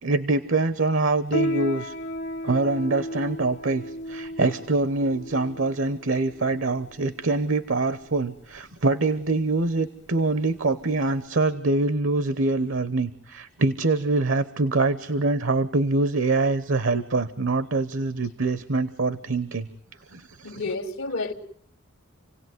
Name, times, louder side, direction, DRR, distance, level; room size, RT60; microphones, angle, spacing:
voice 1, 0.0-1.9 2.4-19.7 20.1-20.6, right 3 dB, 75° right, 1.0 m, -24 dB
Piano, 1.3-11.2, equal, 60° left, 1.1 m, -35 dB
voice 2, 20.4-21.3, left 3 dB, 85° left, 1.5 m, -30 dB
27.5 x 17.5 x 9.5 m
head